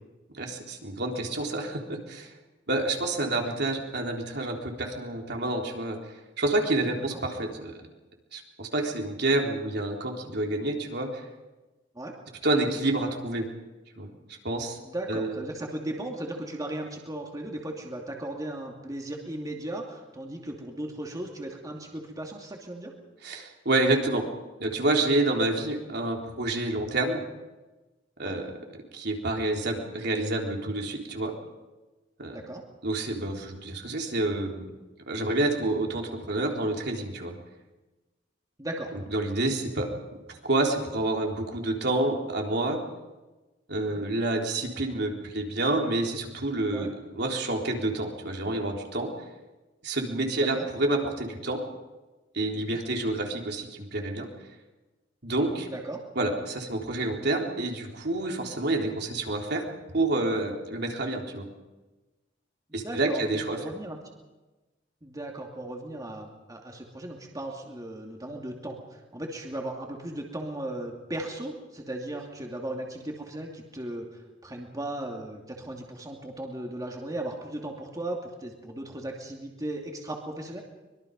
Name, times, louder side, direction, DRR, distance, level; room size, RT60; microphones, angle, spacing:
voice 1, 0.3-2.3 2.7-6.0 6.4-7.8 8.3-11.2 12.4-13.5 14.0-14.1 14.4-14.8 15.1-15.4 23.2-24.2 24.6-27.2 28.2-28.5 28.9-31.3 32.2-32.4 32.8-34.7 35.1-37.3 39.1-39.9 40.3-42.8 43.7-49.1 49.8-51.6 52.3-54.3 55.2-55.7 56.2-59.6 59.9-61.5 62.7-63.6, right 2 dB, 60° right, 1 dB, 3.8 m, -28 dB
voice 2, 14.8-22.9 28.2-28.4 32.3-32.6 38.6-38.9 43.9-44.0 46.7-46.9 50.4-50.7 52.5-52.8 55.7-56.0 62.8-63.2 63.5-64.0 65.0-80.6, right 1 dB, 20° right, 0 dB, 2.6 m, -36 dB
24.5 x 22.5 x 5.4 m, 1.1 s
head